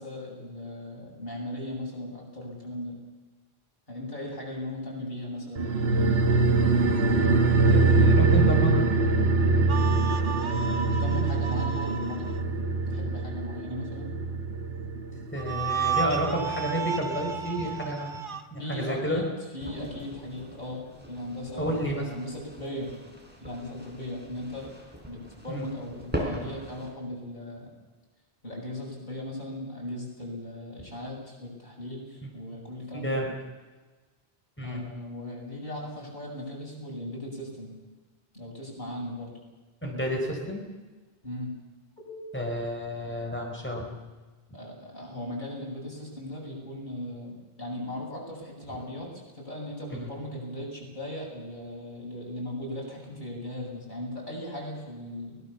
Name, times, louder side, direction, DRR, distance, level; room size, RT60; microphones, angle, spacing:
voice 1, 0.0-3.0 3.9-5.7 10.4-12.3 12.8-14.1 18.6-19.3 19.5-22.9 23.4-24.7 25.1-27.7 28.4-33.2 34.6-37.7 38.3-39.3 41.2-41.6 42.0-42.3 43.0-43.2 44.5-55.4, left 1 dB, 50° left, -2 dB, 7.9 m, -38 dB
sound 1, 5.6-16.4 16.7-16.8, right 3 dB, 75° right, 1.6 m, -24 dB
voice 2, 7.7-9.0 15.3-18.2 18.5-19.2 21.6-22.1 25.5-25.7 32.2-32.3 32.9-33.3 34.6-34.8 39.8-40.6 42.3-43.9 49.9-50.1, equal, 10° left, 0 dB, 4.3 m, -30 dB
sound 2, 9.7-12.4 15.4-18.4, right 6 dB, 55° right, 1.3 m, -33 dB
sound 3, 19.6-26.9, equal, 10° right, 4.2 m, -40 dB
23.5 x 19.0 x 7.1 m, 1.3 s
omnidirectional pair, 1.1 m